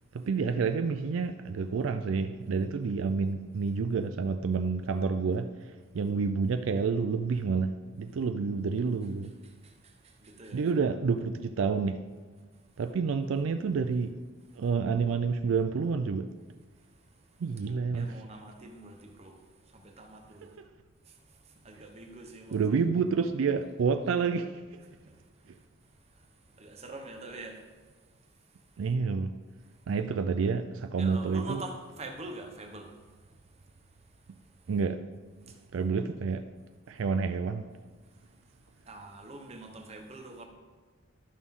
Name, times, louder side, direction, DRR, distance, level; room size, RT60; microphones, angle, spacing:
voice 1, 0.1-9.3 10.5-12.0 12.8-14.2 14.6-16.3 17.4-18.2 20.4-20.7 22.5-24.8 28.8-29.3 29.9-31.6 34.7-35.0 35.7-36.4 36.9-37.7, right 5 dB, 70° right, 0.4 m, -29 dB
voice 2, 10.2-10.6 17.6-19.4 19.7-20.5 21.6-22.6 26.6-27.6 31.0-32.9 38.9-40.4, right 2 dB, 30° right, 0.9 m, -44 dB
11.0 x 6.1 x 3.7 m
head